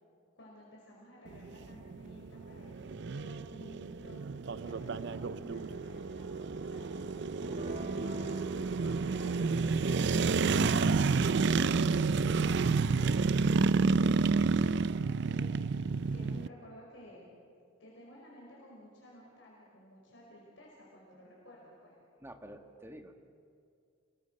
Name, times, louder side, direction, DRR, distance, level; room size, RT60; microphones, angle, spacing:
voice 1, 0.4-10.7 11.2-11.7 12.1-15.6 16.1-17.3 17.8-22.0, equal, 70° left, -4 dB, 5.4 m, -54 dB
sound 1, 1.3-16.5, right 4 dB, 60° right, 0.5 m, -30 dB
sound 2, 7.4-15.1, equal, 35° right, 1.5 m, -48 dB
voice 2, 22.2-23.1, right 1 dB, 15° right, 5 dB, 1.6 m, -48 dB
29.5 x 22.5 x 6.5 m, 2.3 s
head